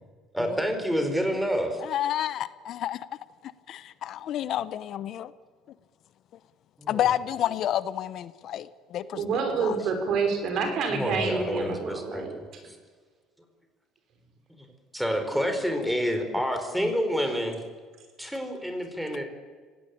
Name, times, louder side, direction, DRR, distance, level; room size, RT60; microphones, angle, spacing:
voice 1, 0.3-1.8 6.8-7.0 10.9-12.2 12.7-12.8 14.6-14.7 14.9-17.6 18.2-19.2, equal, 5° right, 6 dB, 4.6 m, -28 dB
voice 2, 1.8-3.1 3.4-5.3 6.9-9.2 9.6-9.8 15.3-15.9 16.8-16.9, left 11 dB, 60° left, 16 dB, 0.8 m, -30 dB
voice 3, 9.1-12.4, right 5 dB, 60° right, 5 dB, 5.7 m, -28 dB
25.5 x 17.5 x 8.6 m, 1.5 s
cardioid pair, 105°, 0 cm